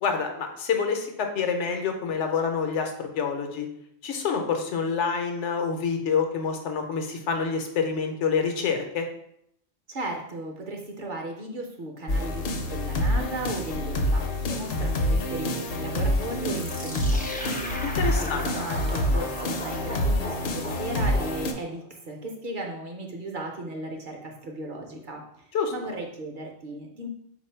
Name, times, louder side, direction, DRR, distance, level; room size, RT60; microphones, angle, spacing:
voice 1, 0.0-3.7 4.0-9.1 17.8-18.5 25.5-25.7, left 6 dB, 85° left, 4 dB, 1.0 m, -27 dB
voice 2, 9.9-17.7 18.2-25.4 25.7-27.1, right 1 dB, 55° right, 1 dB, 0.7 m, -36 dB
sound 1, 12.1-21.5, left 1 dB, 60° left, 0.7 m, -27 dB
sound 2, 16.5-21.8, left 1 dB, 10° left, 0.4 m, -38 dB
4.1 x 2.6 x 4.3 m, 0.73 s
omnidirectional pair, 1.2 m